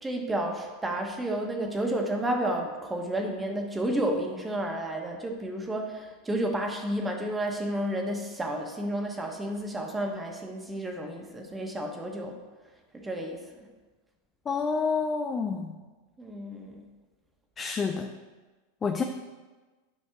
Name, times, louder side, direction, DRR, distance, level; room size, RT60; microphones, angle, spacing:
voice 1, 0.0-12.4 12.9-13.4 16.2-16.8, right 1 dB, 15° right, 2 dB, 1.4 m, -31 dB
voice 2, 14.5-15.7 17.6-18.1 18.8-19.0, left 5 dB, 25° left, 4 dB, 0.6 m, -28 dB
10.5 x 5.2 x 3.7 m, 1.2 s
hypercardioid pair, 95°, 0 cm